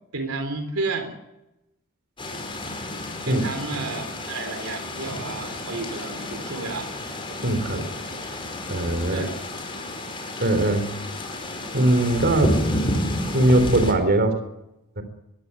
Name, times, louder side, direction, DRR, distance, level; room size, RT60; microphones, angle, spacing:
voice 1, 0.1-1.2 3.2-6.9 9.1-9.4, right 3 dB, 70° right, 7 dB, 3.6 m, -31 dB
sound 1, 2.2-13.9, left 1 dB, 25° left, 5.0 m, -30 dB
voice 2, 7.4-7.9 8.7-9.3 10.4-10.9 11.7-12.5 13.3-14.4 15.0-15.1, right 1 dB, 50° right, 9 dB, 3.7 m, -20 dB
22.0 x 16.5 x 9.9 m, 0.90 s
head